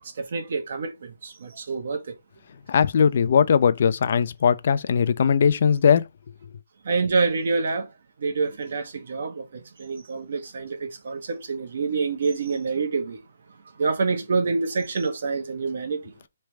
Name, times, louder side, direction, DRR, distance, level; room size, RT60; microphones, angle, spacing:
voice 1, 0.2-2.0 6.8-7.9 8.2-13.2 13.8-16.1, right 4 dB, 55° right, 1.0 m, -27 dB
voice 2, 2.7-6.0, left 7 dB, 45° left, 0.4 m, -19 dB
3.3 x 3.1 x 4.5 m
hypercardioid pair, 170°, 0 cm